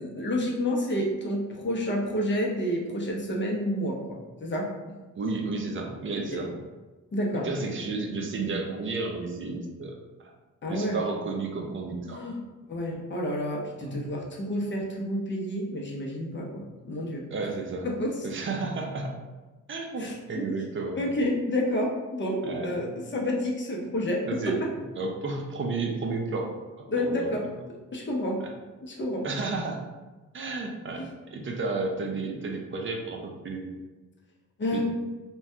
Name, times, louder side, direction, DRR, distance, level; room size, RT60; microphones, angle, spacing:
voice 1, 0.0-4.7 6.3-6.4 7.1-7.5 10.6-11.0 12.1-12.4 12.7-17.3 17.8-18.3 20.0-20.7 21.0-24.2 26.9-27.4 27.9-28.4 28.8-29.3 31.0-31.1 34.6-34.8, left 1 dB, 35° left, -1 dB, 0.6 m, -29 dB
voice 2, 5.2-6.5 7.4-9.9 10.2-10.3 10.7-12.2 13.8-14.0 17.3-17.9 18.2-19.1 19.7-21.0 22.4-22.7 24.2-24.6 25.0-26.5 27.0-27.3 29.2-29.8 30.3-33.7 34.7-34.8, right 3 dB, 40° right, 1 dB, 0.5 m, -32 dB
2.6 x 2.2 x 3.3 m, 1.2 s
cardioid pair, 105°, 32 cm